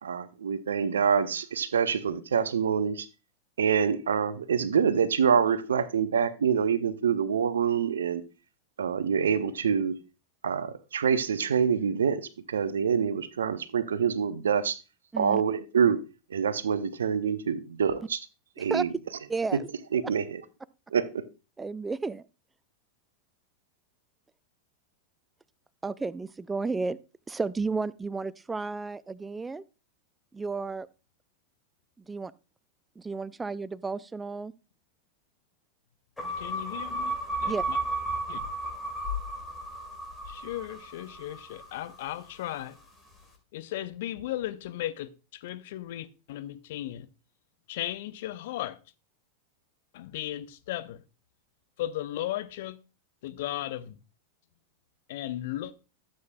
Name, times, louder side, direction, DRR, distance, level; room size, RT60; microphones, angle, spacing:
voice 1, 0.0-3.1 3.6-8.2 8.8-10.0 10.4-14.8 15.2-16.0 16.3-18.3 18.6-19.6 19.9-20.4 20.9-21.2, right 7 dB, 70° right, 0.6 m, -26 dB
voice 2, 19.3-19.7 21.6-22.2 25.8-27.0 27.3-29.6 30.3-30.9 32.1-32.3 33.0-34.5 37.5-37.6, right 4 dB, 10° right, 0.4 m, -32 dB
sound 1, 36.2-42.5, right 1 dB, 10° left, 2.3 m, -34 dB
voice 3, 36.4-37.8 38.3-38.4 40.3-42.8 43.5-47.1 47.7-48.8 49.9-51.0 51.8-52.8 53.2-54.0 55.1-55.7, left 13 dB, 55° left, 0.6 m, -36 dB
12.5 x 7.6 x 2.2 m
figure-of-eight pair, 90°, 0 cm